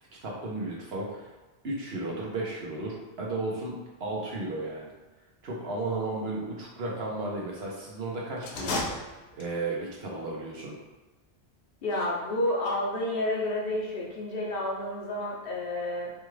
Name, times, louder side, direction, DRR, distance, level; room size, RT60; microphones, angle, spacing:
voice 1, 0.2-1.3 1.6-3.7 4.0-4.9 5.4-10.7, right 2 dB, 65° right, -3 dB, 1.2 m, -34 dB
sound 1, 8.4-9.8, left 2 dB, 90° left, 0.9 m, -33 dB
voice 2, 11.8-16.1, left 1 dB, 60° left, -3 dB, 1.0 m, -30 dB
5.0 x 2.4 x 3.1 m, 1.1 s
omnidirectional pair, 1.1 m